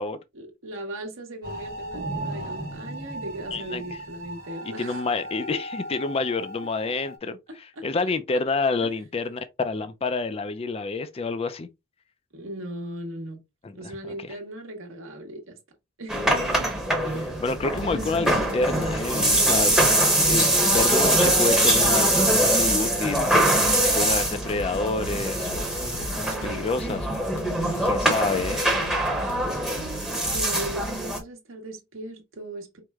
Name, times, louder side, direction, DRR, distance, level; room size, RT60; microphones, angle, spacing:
voice 1, 0.3-5.0 5.4-5.6 7.7-7.8 8.8-8.9 12.3-13.4 13.7-15.6 16.0-16.7 26.3-26.8 28.4-29.1 30.2-32.8, right 1 dB, 65° right, 1.1 m, -38 dB
sound 1, 1.4-7.2, right 1 dB, 45° right, 1.3 m, -36 dB
voice 2, 3.5-4.0 4.8-11.7 13.6-14.3 17.1-19.8 20.2-23.6 23.9-25.7 26.0-27.2 27.8-28.6, left 3 dB, 25° left, 0.3 m, -29 dB
sound 2, 16.1-31.2, right 1 dB, 5° right, 0.8 m, -23 dB
sound 3, 17.7-30.4, left 3 dB, 75° left, 0.6 m, -40 dB
4.7 x 2.1 x 3.4 m
head